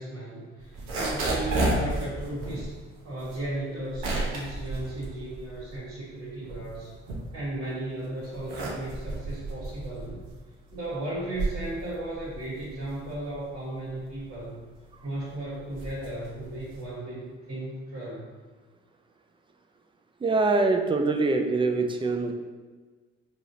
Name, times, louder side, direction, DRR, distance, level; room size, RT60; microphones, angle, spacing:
voice 1, 0.0-2.7 3.0-6.9 7.3-10.3 10.7-14.6 15.0-18.3, right 1 dB, 55° right, -10 dB, 1.3 m, -35 dB
sound 1, 0.6-5.9 6.3-7.7 8.2-17.0, right 2 dB, 75° right, 0.9 m, -33 dB
voice 2, 20.2-22.3, right 3 dB, 15° right, 4 dB, 0.5 m, -24 dB
4.7 x 2.9 x 2.7 m, 1.4 s
hypercardioid pair, 55°, 31 cm